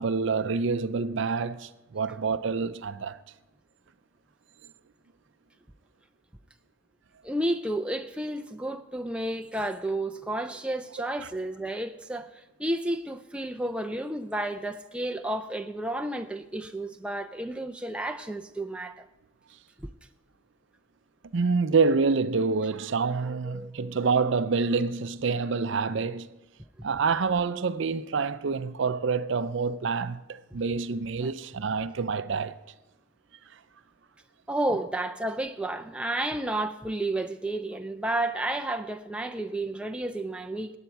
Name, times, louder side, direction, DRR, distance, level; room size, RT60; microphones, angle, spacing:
voice 1, 0.0-3.2 21.3-26.4 26.8-32.6, right 4 dB, 60° right, 0.5 m, -27 dB
voice 2, 7.2-19.1 19.8-19.9 23.2-24.0 31.2-31.3 34.5-40.8, right 1 dB, 5° right, 0.4 m, -31 dB
20.5 x 9.0 x 4.6 m
head